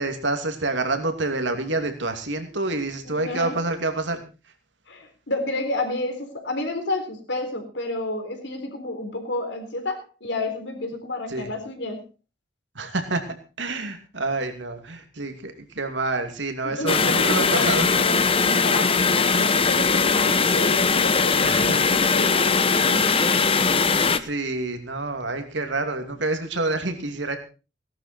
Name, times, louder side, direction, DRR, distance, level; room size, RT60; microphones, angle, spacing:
voice 1, 0.0-4.2 11.3-11.5 12.7-17.9 21.4-21.9 24.1-27.4, right 2 dB, 75° right, 6 dB, 2.7 m, -28 dB
voice 2, 3.0-3.6 4.9-12.0 16.6-23.1, left 2 dB, 70° left, 5 dB, 3.9 m, -30 dB
sound 1, 16.9-24.2, left 5 dB, 30° left, 0.8 m, -20 dB
18.0 x 12.0 x 4.4 m, 0.33 s
head